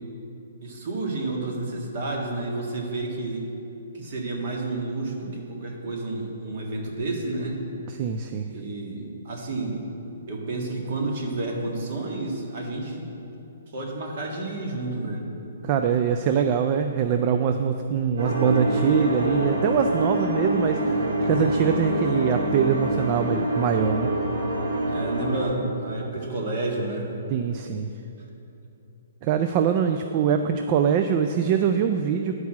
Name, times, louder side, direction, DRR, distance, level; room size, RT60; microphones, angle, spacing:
voice 1, 0.6-3.5 3.9-7.6 8.5-9.8 10.3-13.1 13.7-15.3 24.8-27.1 29.8-29.9, right 2 dB, 50° right, -1 dB, 1.9 m, -30 dB
voice 2, 7.9-8.5 15.6-24.1 27.3-27.9 29.2-32.3, right 7 dB, 30° right, 7 dB, 0.4 m, -23 dB
sound 1, 18.2-25.4, right 1 dB, 75° right, 2.5 m, -26 dB
11.0 x 4.7 x 7.3 m, 2.9 s
hypercardioid pair, 160°, 0 cm